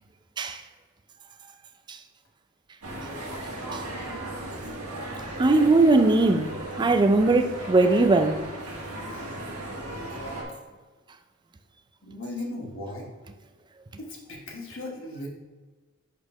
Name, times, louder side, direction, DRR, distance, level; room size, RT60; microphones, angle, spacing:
sound 1, 2.8-10.4, right 1 dB, 70° right, 1.3 m, -36 dB
voice 1, 5.4-6.5 6.8-8.4, right 2 dB, 20° right, 0.3 m, -19 dB
voice 2, 12.0-13.1 14.0-15.3, left 2 dB, 60° left, 1.2 m, -37 dB
4.8 x 3.9 x 5.5 m
head